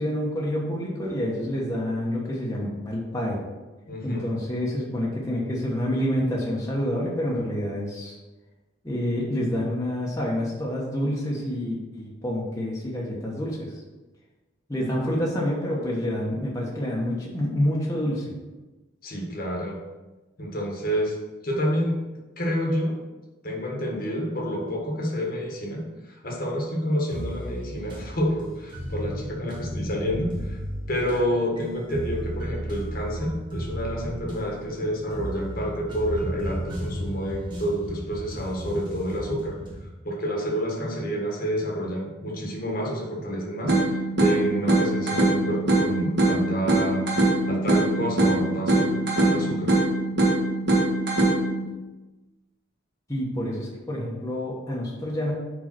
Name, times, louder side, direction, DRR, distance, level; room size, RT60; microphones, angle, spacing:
voice 1, 0.0-3.4 4.0-8.1 8.8-13.7 14.7-18.3 53.1-55.3, equal, 15° left, -5 dB, 1.1 m, -28 dB
voice 2, 3.9-4.2 19.0-19.8 20.4-21.2 21.4-22.0 22.4-23.0 23.4-30.6 30.9-39.5 40.0-47.0 47.5-49.7, equal, 45° left, -1 dB, 1.4 m, -28 dB
sound 1, 27.1-39.9, equal, 25° right, 1.5 m, -35 dB
sound 2, 43.7-51.7, right 2 dB, 55° right, 1.9 m, -23 dB
5.1 x 4.8 x 5.9 m, 1.1 s
head